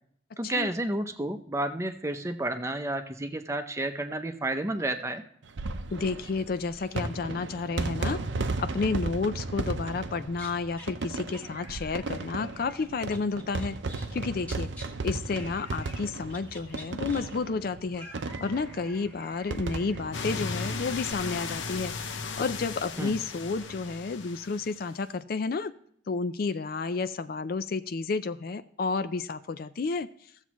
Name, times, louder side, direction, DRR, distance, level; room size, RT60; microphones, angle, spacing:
voice 1, 0.4-5.2 23.0-23.2, right 1 dB, 15° right, 7 dB, 0.7 m, -31 dB
sound 1, 5.4-21.5 21.8-21.9 22.1-22.2 23.5-23.7, right 3 dB, 80° right, 0.7 m, -35 dB
voice 2, 5.9-13.8 14.1-14.7 15.0-18.1 18.4-25.7 26.1-30.1, left 4 dB, 55° left, 12 dB, 0.4 m, -31 dB
sound 2, 10.3-10.9 11.3-14.2 14.4-14.9 15.3-16.0 16.3-21.1, left 1 dB, 10° left, 1.4 m, -49 dB
sound 3, 20.1-24.9, left 4 dB, 85° left, 0.8 m, -36 dB
15.5 x 7.3 x 3.0 m, 0.67 s
head